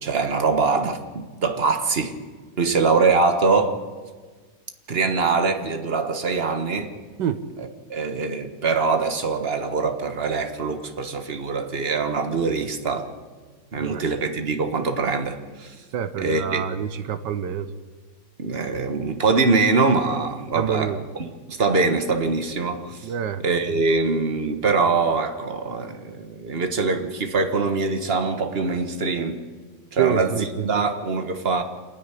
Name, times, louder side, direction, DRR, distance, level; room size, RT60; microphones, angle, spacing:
voice 1, 0.0-2.2 2.6-3.8 4.9-6.9 7.6-13.1 13.7-15.7 16.2-16.6 18.4-23.1 23.4-29.4 29.9-31.6, right 4 dB, 35° right, 7 dB, 1.6 m, -23 dB
voice 2, 15.9-17.7 20.5-21.0 23.0-23.4 30.0-30.8, right 8 dB, 80° right, 11 dB, 1.6 m, -27 dB
27.0 x 10.0 x 10.0 m, 1.4 s
omnidirectional pair, 1.9 m